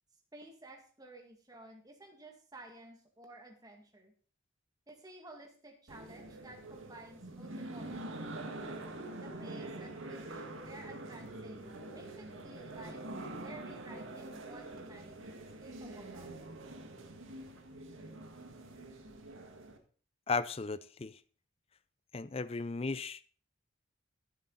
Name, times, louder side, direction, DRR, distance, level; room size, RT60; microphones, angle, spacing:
voice 1, 0.3-4.1 4.9-8.5 9.2-13.0 13.4-16.3, right 1 dB, 20° right, 2.0 m, -53 dB
sound 1, 5.9-19.8, right 2 dB, 80° right, 1.8 m, -45 dB
voice 2, 20.3-21.2 22.1-23.2, left 4 dB, 30° left, 0.4 m, -35 dB
14.0 x 7.8 x 4.0 m
head